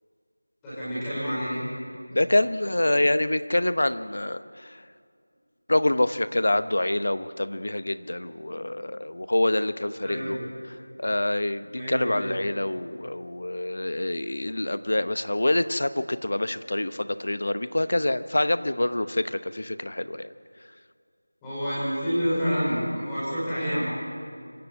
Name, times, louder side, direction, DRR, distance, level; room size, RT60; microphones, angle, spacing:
voice 1, 0.6-1.6 10.0-10.5 11.7-12.4 21.4-23.9, equal, 5° left, -13 dB, 5.2 m, -28 dB
voice 2, 2.1-4.8 5.7-10.4 11.0-20.3, left 1 dB, 55° left, 13 dB, 0.9 m, -26 dB
25.5 x 15.0 x 8.1 m, 2.2 s
figure-of-eight pair, 175°, 0 cm